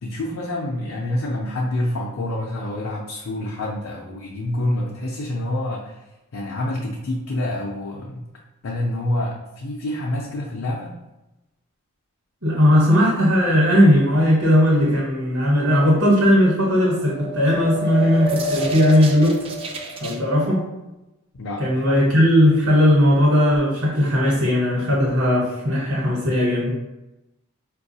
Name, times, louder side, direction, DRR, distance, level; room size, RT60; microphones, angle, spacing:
voice 1, 0.0-6.0 6.3-8.2 8.6-11.0 21.3-22.0, left 1 dB, 60° left, -3 dB, 0.5 m, -27 dB
voice 2, 12.4-19.4 20.0-20.6 21.6-26.8, equal, 70° right, -5 dB, 1.0 m, -17 dB
sound 1, 16.8-20.2, equal, 25° right, 0.3 m, -28 dB
4.6 x 2.3 x 2.7 m, 0.97 s
head